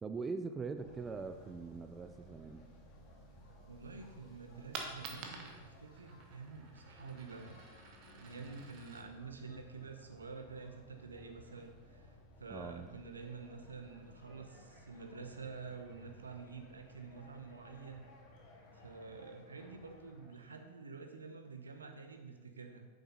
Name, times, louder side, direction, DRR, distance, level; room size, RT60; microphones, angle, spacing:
voice 1, 0.0-2.7 12.5-12.9, right 4 dB, 15° right, 8 dB, 0.5 m, -42 dB
sound 1, 0.7-20.6, left 1 dB, 40° left, 2.1 m, -59 dB
voice 2, 3.6-7.6 8.1-18.1 18.7-22.9, right 4 dB, 75° right, 5 dB, 1.0 m, -49 dB
Coin (dropping), 4.7-10.4, right 4 dB, 40° right, 1.3 m, -50 dB
9.4 x 7.3 x 4.0 m, 1.3 s
figure-of-eight pair, 90°, 0 cm